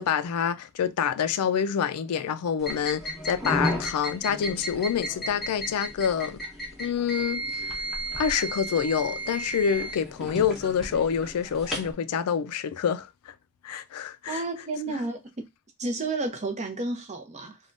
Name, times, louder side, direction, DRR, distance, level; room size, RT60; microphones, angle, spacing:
voice 1, 0.0-6.4 6.8-7.7 8.2-13.1 13.6-14.4 14.9-15.0, left 7 dB, 85° left, 0.4 m, -27 dB
sound 1, 2.6-11.9, right 1 dB, ahead, 1.0 m, -34 dB
voice 2, 14.3-15.4 15.8-17.6, right 3 dB, 30° right, 0.6 m, -31 dB
3.4 x 2.3 x 2.5 m
head